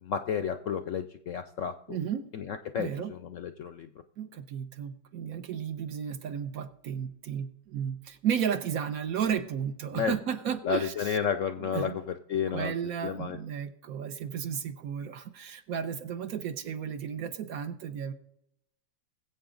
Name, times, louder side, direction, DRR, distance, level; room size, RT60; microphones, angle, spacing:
voice 1, 0.0-2.0 2.3-3.9 9.9-10.1 10.6-12.7 13.0-13.4, left 7 dB, 70° left, 10 dB, 0.7 m, -32 dB
voice 2, 1.9-2.3 2.7-3.1 4.2-11.2 11.6-12.0 12.5-18.1, right 8 dB, 65° right, 9 dB, 1.1 m, -33 dB
20.5 x 7.9 x 3.8 m, 0.77 s
omnidirectional pair, 1.9 m